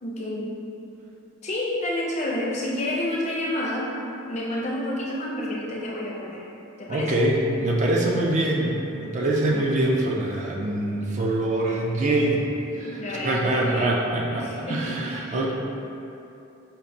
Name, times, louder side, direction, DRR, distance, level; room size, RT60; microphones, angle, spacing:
voice 1, 0.0-0.6 1.4-3.9 4.3-6.4 6.8-7.1 12.8-14.0 14.3-15.5, left 1 dB, 30° left, -4 dB, 0.5 m, -29 dB
voice 2, 6.9-12.5 12.8-15.5, right 1 dB, 35° right, -2 dB, 0.3 m, -24 dB
5.2 x 2.5 x 2.6 m, 2.8 s
head